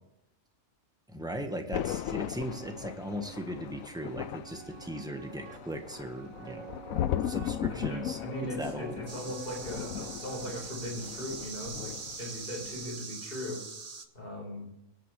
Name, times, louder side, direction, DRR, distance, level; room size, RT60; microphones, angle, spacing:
voice 1, 1.1-6.7 7.2-8.2 8.6-9.0, equal, 5° right, 4 dB, 1.3 m, -38 dB
Thunder, 1.7-12.3 12.6-12.9, left 11 dB, 85° left, 1.0 m, -37 dB
sound 1, 2.5-10.4, right 12 dB, 90° right, 1.2 m, -49 dB
voice 2, 7.7-11.9 12.2-13.6 14.1-14.7, equal, 40° left, -1 dB, 4.6 m, -39 dB
sound 2, 9.1-14.1, right 4 dB, 30° right, 1.0 m, -42 dB
24.0 x 8.9 x 3.3 m, 0.87 s
omnidirectional pair, 1.4 m